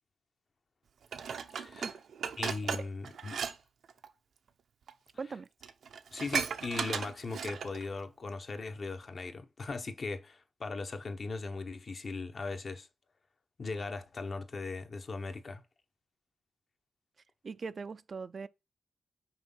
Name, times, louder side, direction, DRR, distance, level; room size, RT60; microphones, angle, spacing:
Dishes pots and pans, 1.1-3.5 3.8-4.1 4.9-5.0 5.3-5.4 5.6-7.8 8.3-8.4, right 7 dB, 80° right, 0.7 m, -36 dB
voice 1, 1.5-1.9 2.4-3.4 6.1-12.9 13.6-15.6, left 3 dB, 45° left, 0.9 m, -38 dB
voice 2, 5.2-5.5 17.4-18.5, right 5 dB, 45° right, 0.4 m, -40 dB
6.1 x 4.6 x 5.4 m
wide cardioid pair, 135°, 0 cm